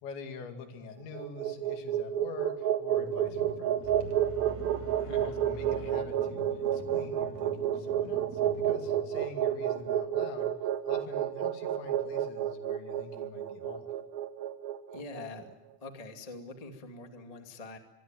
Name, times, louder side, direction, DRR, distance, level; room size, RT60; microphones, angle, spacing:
voice 1, 0.0-3.8 5.0-10.5 10.9-13.9, left 5 dB, 75° left, 6 dB, 4.6 m, -45 dB
sound 1, 1.0-15.3, right 11 dB, 65° right, 2.6 m, -30 dB
sound 2, 2.9-9.8, right 2 dB, 40° right, 3.7 m, -46 dB
sound 3, 3.8-7.1, equal, 5° right, 5.5 m, -48 dB
voice 2, 5.1-5.4 14.9-15.5 15.8-17.8, left 3 dB, 50° left, 5 dB, 0.4 m, -44 dB
25.0 x 22.0 x 9.1 m, 0.96 s
omnidirectional pair, 5.3 m